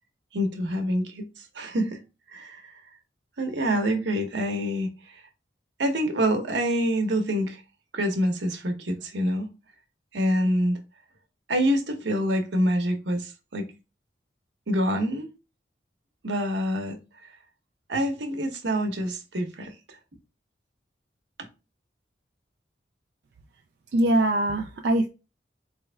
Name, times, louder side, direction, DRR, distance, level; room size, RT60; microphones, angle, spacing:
voice 1, 0.3-2.0 2.3-2.7 3.4-5.2 5.8-7.6 7.9-9.5 10.1-10.8 11.5-13.6 14.7-15.3 16.2-17.0 17.2-17.3 17.9-20.0 21.4-21.5, equal, 85° right, 0.9 m, -26 dB
voice 2, 23.9-25.1, right 1 dB, 60° right, 0.3 m, -22 dB
4.2 x 3.3 x 2.2 m
head